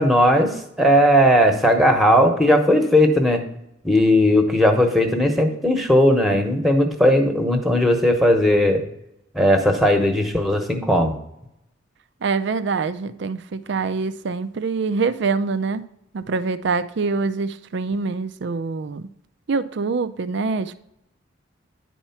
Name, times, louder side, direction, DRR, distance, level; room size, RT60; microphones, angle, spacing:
voice 1, 0.0-3.4 3.8-8.8 9.3-11.1, equal, ahead, 1.0 m, -17 dB
voice 2, 12.2-15.8 16.1-19.1 19.5-20.8, right 4 dB, 60° right, 0.5 m, -25 dB
10.0 x 4.3 x 5.7 m
head